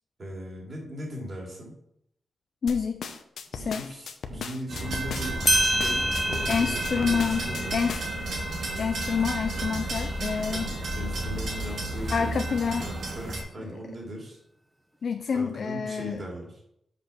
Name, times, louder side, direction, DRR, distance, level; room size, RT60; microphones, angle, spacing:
voice 1, 0.2-1.7 3.5-7.7 10.5-12.4 12.8-14.4 15.3-16.6, equal, 35° right, -2 dB, 2.7 m, -39 dB
voice 2, 2.6-3.2 3.5-3.8 6.5-7.4 7.7-8.0 8.8-10.7 12.1-12.9 13.6-13.7 15.0-16.2, left 6 dB, 55° left, 8 dB, 0.4 m, -28 dB
sound 1, 2.7-8.2, left 5 dB, 80° left, 0.7 m, -37 dB
sound 2, 4.7-13.4, right 1 dB, 70° right, 2.1 m, -32 dB
sound 3, 5.1-5.2 5.5-10.6, equal, 5° right, 0.9 m, -30 dB
6.8 x 5.2 x 5.9 m, 0.77 s
wide cardioid pair, 150°, 0 cm